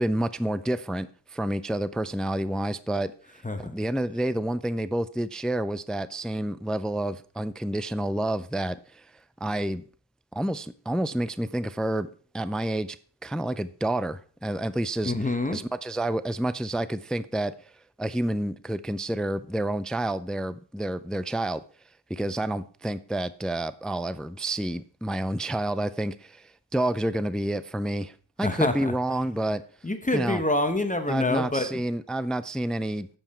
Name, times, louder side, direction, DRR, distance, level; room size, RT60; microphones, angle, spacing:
voice 1, 0.0-3.1 3.6-9.1 9.4-9.8 10.3-12.1 12.3-13.0 13.2-15.1 15.5-17.7 18.0-21.6 22.1-29.6 30.1-30.4 31.1-33.1, right 1 dB, ahead, 0.3 m, -29 dB
voice 2, 3.3-3.7 15.0-15.6 28.4-28.9 29.8-31.8, left 2 dB, 20° left, 1.0 m, -27 dB
9.1 x 7.1 x 4.3 m
wide cardioid pair, 85°, 41 cm